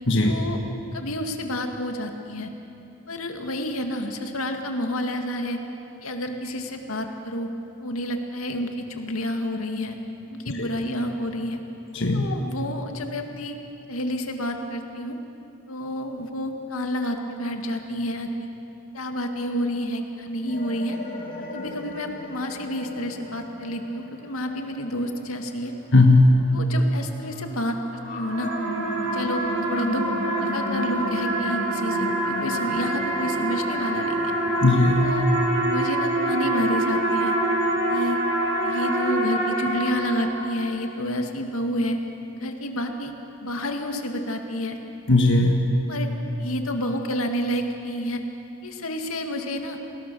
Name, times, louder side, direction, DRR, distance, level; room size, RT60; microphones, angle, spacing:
voice 1, 0.2-0.6 0.9-2.5 3.1-5.6 6.0-7.5 7.8-10.0 10.3-11.6 12.1-13.6 13.9-15.2 15.7-18.5 18.9-21.0 21.5-25.7 26.5-28.5 29.1-29.4 29.7-30.0 30.4-34.4 35.0-35.3 35.6-37.4 37.9-38.2 38.6-42.0 42.4-43.1 43.4-44.8 45.9-46.1 46.4-48.2 48.6-49.8, left 1 dB, 85° left, 4 dB, 2.2 m, -29 dB
voice 2, 11.9-12.2 25.9-26.4 34.6-35.1 45.1-45.7, left 2 dB, 60° left, 2 dB, 1.6 m, -17 dB
sound 1, 20.5-26.5 26.9-35.0, left 2 dB, 45° left, 3.6 m, -36 dB
sound 2, 27.9-40.7, right 1 dB, 65° right, 7.6 m, -26 dB
29.5 x 19.5 x 7.0 m, 2.8 s
head